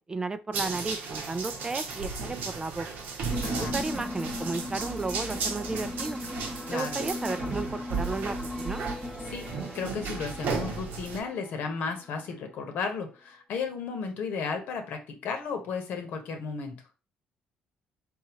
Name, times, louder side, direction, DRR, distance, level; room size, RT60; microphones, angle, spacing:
voice 1, 0.1-2.9 3.6-6.2 6.7-8.8, right 3 dB, 20° right, 11 dB, 0.4 m, -33 dB
sound 1, 0.5-11.2, right 4 dB, 75° right, 1.1 m, -35 dB
sound 2, 3.3-12.3, left 1 dB, 5° left, 0.9 m, -38 dB
voice 2, 3.4-3.8 6.7-7.0 9.3-9.5 9.7-16.8, left 5 dB, 70° left, 5 dB, 1.2 m, -34 dB
4.3 x 3.7 x 3.0 m, 0.33 s
cardioid pair, 85°, 3 cm